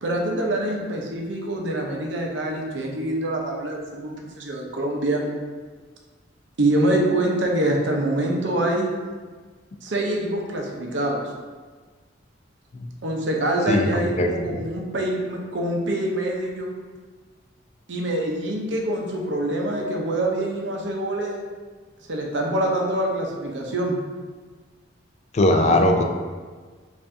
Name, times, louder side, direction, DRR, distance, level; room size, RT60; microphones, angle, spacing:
voice 1, 0.0-5.4 6.6-9.0 9.8-11.2 13.0-16.8 17.9-21.4 22.1-24.0, right 1 dB, 70° right, 0 dB, 0.6 m, -25 dB
voice 2, 13.7-14.3 25.3-26.0, left 1 dB, 35° left, 4 dB, 0.3 m, -19 dB
4.6 x 2.5 x 2.6 m, 1.4 s
head